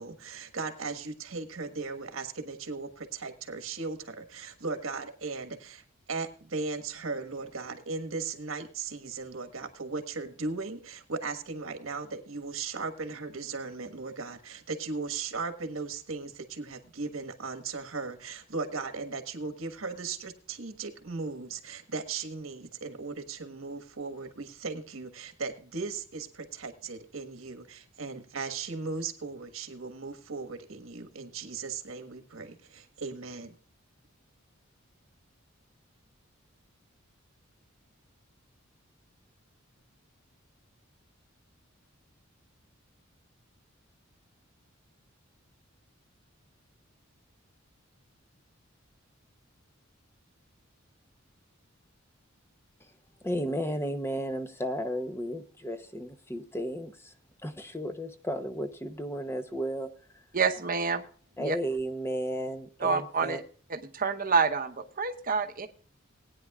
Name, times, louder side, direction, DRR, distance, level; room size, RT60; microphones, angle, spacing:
voice 1, 0.0-33.5, right 4 dB, 85° right, 7 dB, 1.4 m, -37 dB
voice 2, 53.2-57.1 57.4-59.9 61.4-63.4, equal, 10° left, 9 dB, 0.7 m, -33 dB
voice 3, 60.3-61.0 61.4-61.6 62.8-63.4 63.7-65.7, right 5 dB, 45° right, 6 dB, 0.9 m, -28 dB
19.5 x 9.5 x 2.3 m, 0.43 s
head